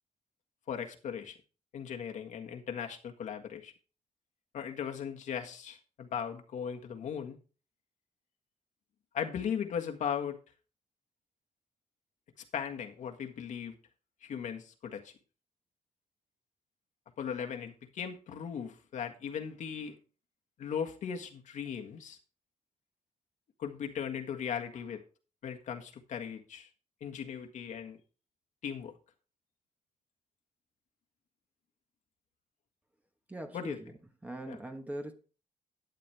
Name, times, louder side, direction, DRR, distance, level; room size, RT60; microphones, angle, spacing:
voice 1, 0.7-1.4 1.7-3.7 4.5-7.4 9.1-10.4 12.5-13.8 14.2-15.1 17.2-20.0 20.6-22.2 23.6-25.0 25.4-26.7 27.0-28.0 28.6-28.9 33.5-33.8 34.5-34.6, left 7 dB, 75° left, 1.6 m, -38 dB
voice 2, 33.3-33.9 34.2-35.1, right 1 dB, 10° right, 1.2 m, -41 dB
12.0 x 9.3 x 3.4 m
wide cardioid pair, 160°, 13 cm